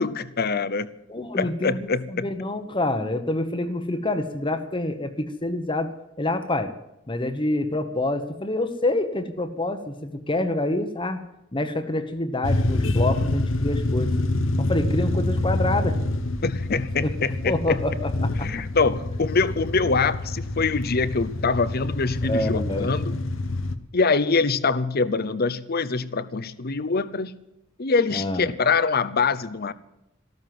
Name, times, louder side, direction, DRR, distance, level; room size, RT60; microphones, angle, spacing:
voice 1, 0.0-0.9 1.3-2.3 16.4-17.8 18.4-23.2 23.9-27.4 27.8-29.7, left 4 dB, 50° left, 16 dB, 0.8 m, -24 dB
voice 2, 1.1-6.7 7.1-11.2 11.5-14.1 14.6-16.0 17.0-17.1 17.4-18.5 22.2-22.9 28.1-28.5, left 2 dB, 25° left, 8 dB, 1.1 m, -27 dB
sound 1, 12.4-23.7, left 2 dB, 70° left, 1.1 m, -26 dB
14.0 x 13.0 x 7.7 m, 0.88 s
head